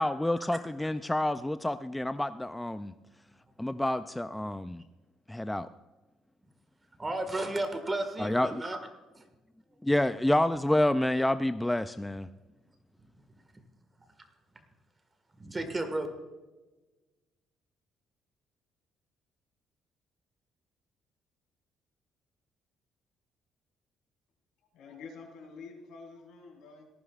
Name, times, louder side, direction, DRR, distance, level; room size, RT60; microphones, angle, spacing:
voice 1, 0.0-2.9 3.6-4.8 5.3-5.7 8.2-8.6 9.8-12.3, left 1 dB, 5° left, 11 dB, 0.3 m, -28 dB
voice 2, 7.0-8.8 9.1-9.2 15.4-16.1, right 2 dB, 20° right, 6 dB, 1.7 m, -33 dB
voice 3, 24.7-26.9, left 4 dB, 80° left, 2 dB, 3.9 m, -48 dB
18.0 x 14.5 x 2.4 m, 1.2 s
cardioid pair, 150°, 0 cm